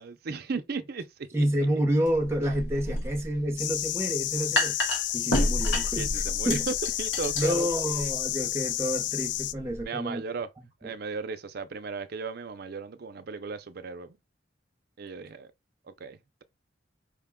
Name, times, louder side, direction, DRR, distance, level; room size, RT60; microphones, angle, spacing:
voice 1, 0.0-1.5 5.4-5.5 6.0-8.1 9.8-10.5 10.8-14.2 15.0-15.5 15.9-16.4, right 4 dB, 55° right, 0.5 m, -36 dB
voice 2, 1.3-4.8 5.1-6.7 7.4-10.2, equal, 15° right, 0.8 m, -29 dB
sound 1, 2.1-9.8, left 1 dB, 90° left, 1.2 m, -31 dB
sound 2, 3.6-9.5, left 14 dB, 65° left, 0.3 m, -31 dB
5.1 x 2.2 x 3.5 m
head